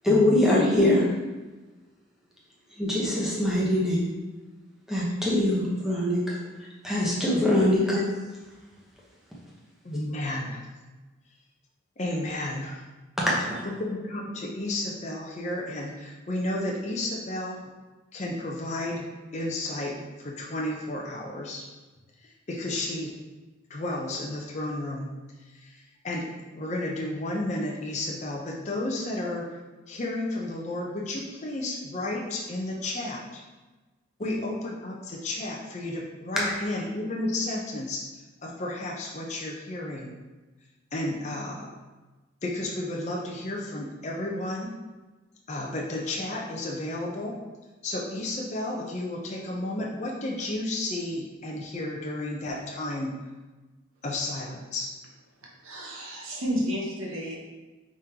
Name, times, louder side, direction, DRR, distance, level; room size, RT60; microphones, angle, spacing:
voice 1, 0.0-1.1 2.8-4.0 4.9-6.3 6.8-8.0 13.3-13.6 36.4-36.5, left 1 dB, ahead, -6 dB, 0.9 m, -23 dB
voice 2, 9.8-10.7 12.0-12.8 13.8-17.6 18.1-19.1 19.3-21.7 22.2-23.1 23.7-25.1 25.5-26.3 26.5-29.5 29.9-33.4 34.2-38.0 38.4-40.1 40.9-41.7 42.4-44.7 45.5-47.4 47.8-53.1 54.0-54.9, left 1 dB, 35° left, -2 dB, 0.5 m, -32 dB
voice 3, 55.6-57.4, equal, 75° right, -2 dB, 1.0 m, -31 dB
5.2 x 3.6 x 2.8 m, 1.2 s
head